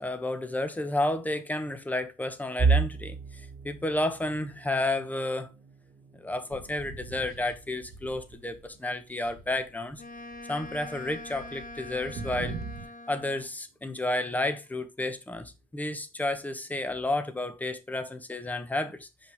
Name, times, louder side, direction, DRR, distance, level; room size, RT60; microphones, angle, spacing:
voice 1, 0.0-5.5 6.1-10.0 10.5-12.6 13.1-19.3, left 2 dB, 10° left, 1.1 m, -31 dB
sound 1, 2.6-14.4 14.8-15.1 15.5-15.7 16.5-17.0, right 4 dB, 40° right, 1.5 m, -35 dB
sound 2, 6.5-8.8 9.1-12.8, right 4 dB, 60° right, 1.2 m, -43 dB
Wind instrument woodwind instrument, 10.0-13.5, left 2 dB, 55° left, 1.5 m, -44 dB
5.7 x 4.9 x 3.5 m
cardioid pair, 110°, 17 cm